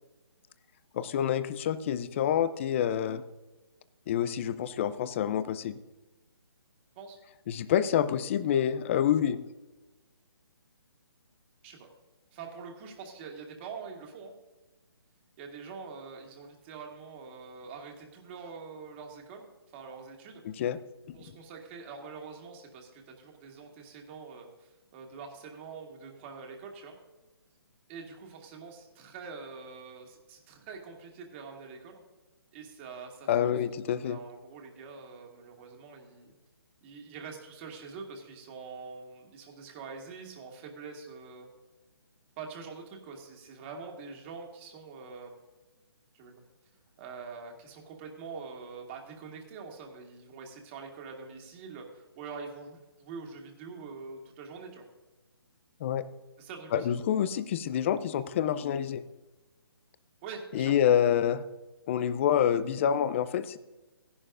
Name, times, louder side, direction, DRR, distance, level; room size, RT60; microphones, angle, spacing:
voice 1, 0.9-3.2 4.1-5.8 7.5-9.4 20.6-20.8 33.3-34.2 55.8-56.0 56.7-59.0 60.5-61.4 61.9-63.6, left 9 dB, 30° left, 14 dB, 0.5 m, -27 dB
voice 2, 12.3-14.3 15.4-19.5 19.7-20.4 21.1-27.0 27.9-32.0 32.5-33.6 33.9-36.3 36.8-41.5 42.4-45.3 46.1-46.4 47.0-54.8 56.4-56.9 60.2-60.7, right 5 dB, 30° right, 2 dB, 2.1 m, -45 dB
15.0 x 11.0 x 2.5 m, 1.1 s
figure-of-eight pair, 150°, 13 cm